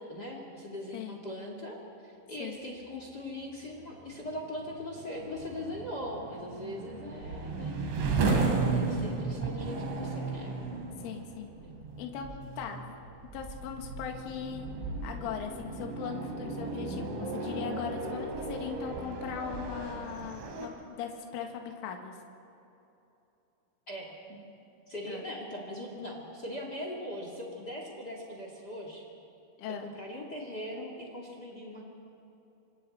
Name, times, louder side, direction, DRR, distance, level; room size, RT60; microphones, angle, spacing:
voice 1, 0.0-7.8 8.6-10.6 11.6-11.8 23.9-24.4 24.9-29.1 29.8-31.8, left 1 dB, 40° left, 0 dB, 1.4 m, -40 dB
sound 1, 3.6-20.7, right 4 dB, 65° right, 4.8 m, -35 dB
voice 2, 11.0-11.5 12.0-13.0 13.3-14.7 15.0-22.2 25.1-25.2 29.6-29.9, left 7 dB, 75° left, 3 dB, 4.1 m, -39 dB
26.5 x 26.0 x 4.3 m, 2.9 s
omnidirectional pair, 5.9 m